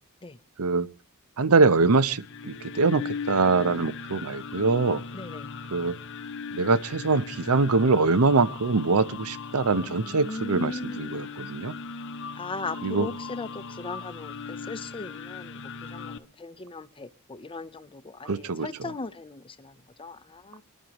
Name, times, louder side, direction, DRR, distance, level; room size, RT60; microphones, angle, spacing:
voice 1, 1.4-5.0 5.7-5.9 6.5-11.7 12.8-13.1 18.3-18.7, right 4 dB, 75° right, 0.7 m, -23 dB
sound 1, 1.9-16.2, left 5 dB, 60° left, 0.8 m, -38 dB
voice 2, 5.1-5.6 9.8-11.1 12.4-20.6, left 3 dB, 25° left, 0.7 m, -38 dB
27.5 x 11.5 x 3.0 m
head